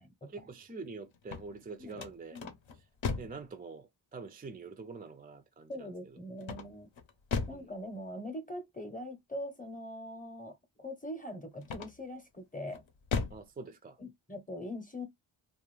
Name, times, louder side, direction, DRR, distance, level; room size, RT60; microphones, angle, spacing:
voice 1, 0.2-2.4 3.2-6.2 7.5-7.7 13.3-14.0, right 4 dB, 20° right, 0.3 m, -46 dB
sound 1, 1.1-3.5 6.4-7.7 11.6-12.2 12.7-13.5, left 5 dB, 70° left, 0.8 m, -37 dB
voice 2, 5.7-6.9 7.5-12.8 14.0-15.1, left 1 dB, 15° left, 0.8 m, -42 dB
2.6 x 2.3 x 3.1 m
wide cardioid pair, 85°, 48 cm